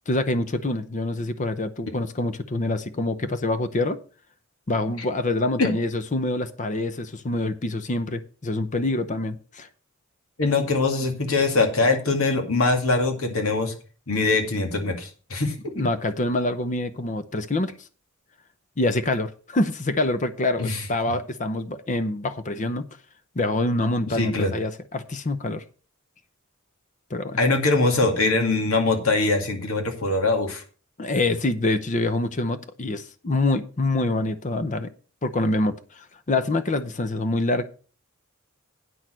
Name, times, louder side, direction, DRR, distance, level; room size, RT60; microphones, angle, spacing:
voice 1, 0.1-4.0 4.7-9.7 15.8-17.7 18.8-22.8 23.4-25.6 27.1-27.4 31.0-34.9 35.2-37.7, left 2 dB, 35° left, 12 dB, 0.7 m, -26 dB
voice 2, 10.4-13.7 14.1-15.8 20.6-20.8 24.1-24.5 27.4-30.6, left 3 dB, 85° left, 5 dB, 2.2 m, -22 dB
9.1 x 6.4 x 6.1 m, 0.38 s
head